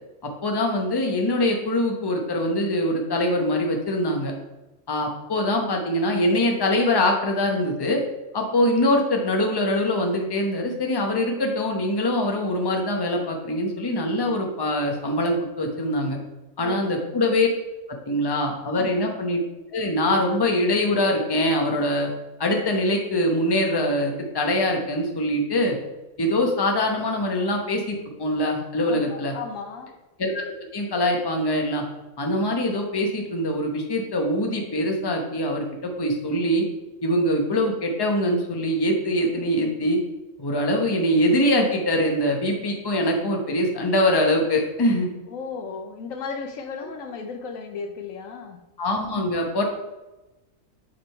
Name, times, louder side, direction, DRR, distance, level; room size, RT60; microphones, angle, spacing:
voice 1, 0.2-4.3 4.9-8.0 8.3-16.2 16.6-17.5 18.1-19.4 19.7-22.1 22.4-25.8 26.2-29.3 30.2-30.4 30.7-31.8 32.2-36.7 37.0-40.0 40.4-45.1 48.8-49.6, left 1 dB, 20° left, 2 dB, 0.8 m, -23 dB
voice 2, 28.9-29.9 45.3-48.6, left 5 dB, 80° left, 6 dB, 1.1 m, -35 dB
7.6 x 3.8 x 4.4 m, 1.0 s
omnidirectional pair, 1.4 m